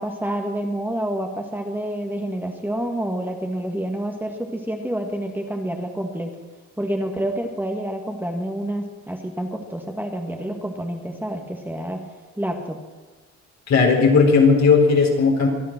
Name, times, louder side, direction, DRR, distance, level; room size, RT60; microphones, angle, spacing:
voice 1, 0.0-6.3 6.8-12.0 12.3-12.8, right 1 dB, 5° right, 2 dB, 2.1 m, -28 dB
voice 2, 13.7-15.5, left 4 dB, 60° left, 1 dB, 4.3 m, -16 dB
25.0 x 9.3 x 6.1 m, 1.3 s
cardioid pair, 90°, 30 cm